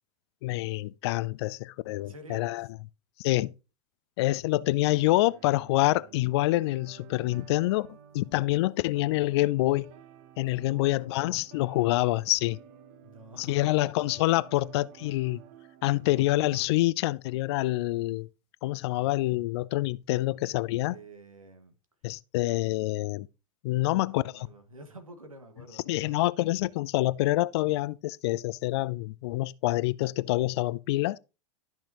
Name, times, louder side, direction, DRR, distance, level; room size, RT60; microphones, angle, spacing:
voice 1, 0.4-2.7 3.2-3.5 4.2-7.9 8.1-9.9 10.4-12.6 13.4-15.4 15.8-18.3 18.6-21.0 22.0-23.3 23.6-24.5 25.9-31.2, left 18 dB, 50° left, 0.5 m, -26 dB
voice 2, 2.0-2.6 10.4-11.0 13.0-13.7 14.5-14.6 20.8-21.7 23.8-26.3, right 1 dB, 85° right, 1.8 m, -49 dB
sound 1, 4.9-8.6 8.9-16.7, right 9 dB, 50° right, 1.3 m, -53 dB
12.5 x 5.9 x 3.0 m
figure-of-eight pair, 95°, 17 cm